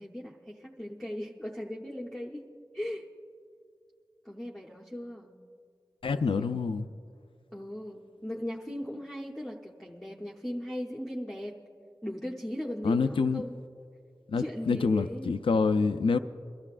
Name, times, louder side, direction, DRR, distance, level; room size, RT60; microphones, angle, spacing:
voice 1, 0.0-2.5 2.7-3.0 4.2-5.4 6.1-6.7 7.5-11.6 12.0-13.6 14.4-15.4, equal, 5° left, 0.8 m, -38 dB
voice 2, 6.0-6.9 12.8-13.4 14.3-16.2, left 4 dB, 80° left, 0.4 m, -26 dB
23.5 x 13.5 x 2.4 m
wide cardioid pair, 60°, 9 cm